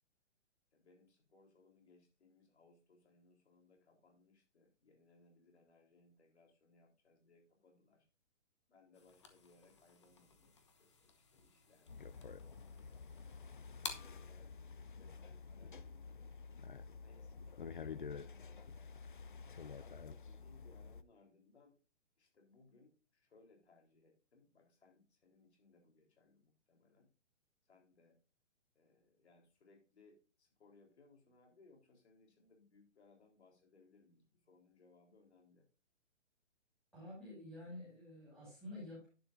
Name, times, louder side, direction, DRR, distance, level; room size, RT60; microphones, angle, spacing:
voice 1, 0.7-8.1 8.7-10.5 10.8-13.3 13.8-16.3 16.9-18.9 19.8-21.7 22.2-27.1 27.6-28.2 28.7-35.7, left 3 dB, 60° left, 2 dB, 4.0 m, -68 dB
sound 1, 8.9-14.3, left 5 dB, 25° left, 1.0 m, -53 dB
sound 2, 11.9-21.0, left 5 dB, 45° left, 0.4 m, -50 dB
voice 2, 36.9-39.1, left 1 dB, ahead, -9 dB, 6.2 m, -50 dB
11.0 x 9.2 x 2.6 m, 0.34 s
hypercardioid pair, 180°, 37 cm